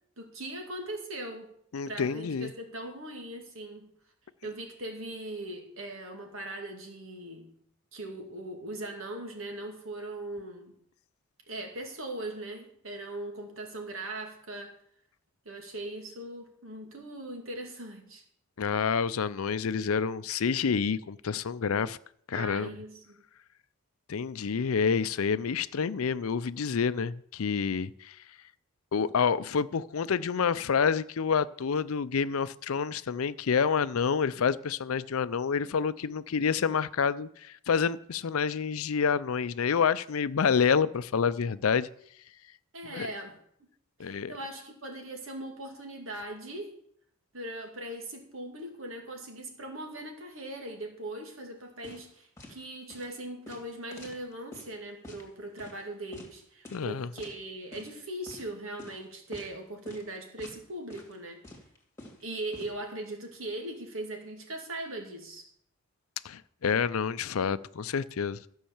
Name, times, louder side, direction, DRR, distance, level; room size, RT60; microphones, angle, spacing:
voice 1, 0.2-1.5 1.8-3.9 4.4-7.5 7.9-10.8 11.5-14.7 15.4-18.2 22.3-23.2 42.7-43.4 44.0-46.8 47.3-61.4 62.2-65.5, right 1 dB, 70° right, 2.4 m, -40 dB
voice 2, 1.7-2.5 18.6-22.0 22.3-22.7 24.1-28.2 28.9-41.9 42.9-43.1 44.0-44.3 56.7-57.1 66.2-68.4, left 6 dB, 85° left, 0.5 m, -28 dB
sound 1, 51.8-52.1 52.4-52.6 52.9-53.1 53.5-54.7 55.0-55.2 55.6-55.8 56.1-56.3 56.6-56.9 57.2-57.4 57.7-58.0 58.3-58.4 58.8-59.0 59.3-59.6 59.9-60.0 60.4-60.6 60.9-61.1 61.4-62.7, left 2 dB, 15° left, 2.3 m, -47 dB
13.5 x 5.6 x 7.2 m
head